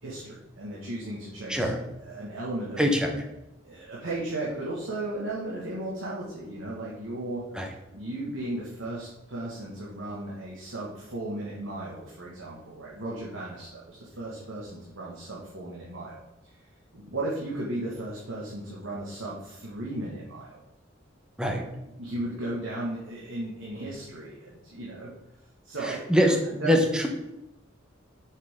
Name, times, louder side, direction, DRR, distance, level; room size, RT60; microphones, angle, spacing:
voice 1, 0.0-1.7 2.0-2.8 3.6-7.7 7.9-16.6 16.9-20.6 22.0-25.1 25.6-26.3 26.6-26.8, right 1 dB, 85° right, -6 dB, 1.8 m, -35 dB
voice 2, 2.8-3.1 7.6-7.7 21.4-21.6 25.9-26.4 26.6-27.1, equal, 5° right, 3 dB, 1.0 m, -23 dB
7.0 x 6.5 x 3.7 m, 0.92 s
head